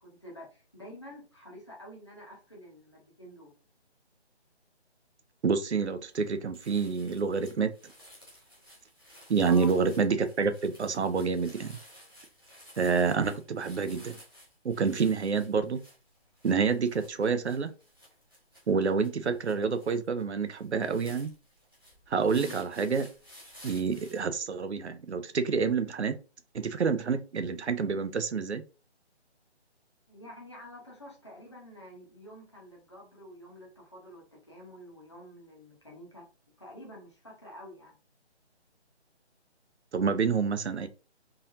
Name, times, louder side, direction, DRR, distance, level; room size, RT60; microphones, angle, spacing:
voice 1, 0.0-3.5 9.4-9.7 30.1-36.3 36.6-37.9, left 1 dB, 25° left, 0.9 m, -48 dB
voice 2, 5.4-7.9 9.3-11.8 12.8-14.2 14.6-15.8 16.4-17.7 18.7-21.3 22.1-23.1 23.6-26.2 26.5-28.6 39.9-40.9, right 5 dB, 75° right, 0.6 m, -28 dB
sound 1, 6.1-6.3 6.5-24.2, equal, 20° right, 0.7 m, -54 dB
3.9 x 2.8 x 2.5 m
hypercardioid pair, 180°, 34 cm